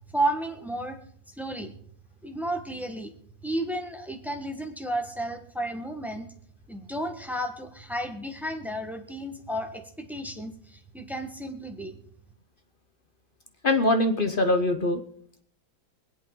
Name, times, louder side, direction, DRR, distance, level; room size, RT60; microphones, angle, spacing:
voice 1, 0.1-1.0 1.4-1.7 2.2-3.1 3.4-6.3 6.7-12.0, right 1 dB, ahead, 5 dB, 0.9 m, -32 dB
voice 2, 13.6-15.0, left 1 dB, 60° left, 7 dB, 0.5 m, -23 dB
24.5 x 8.4 x 3.8 m, 0.64 s
omnidirectional pair, 2.1 m